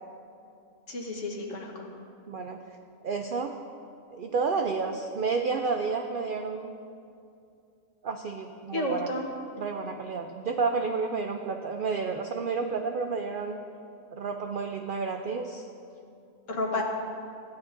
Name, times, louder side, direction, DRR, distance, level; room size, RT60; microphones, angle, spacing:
voice 1, 0.9-1.9 8.7-9.3 16.5-16.8, left 1 dB, 65° left, 0 dB, 1.5 m, -31 dB
voice 2, 2.3-2.6 3.0-3.5 4.1-6.7 8.0-9.1 9.6-13.6 14.1-15.7, right 4 dB, 75° right, 4 dB, 0.5 m, -30 dB
15.0 x 9.3 x 2.6 m, 2.5 s
omnidirectional pair, 1.4 m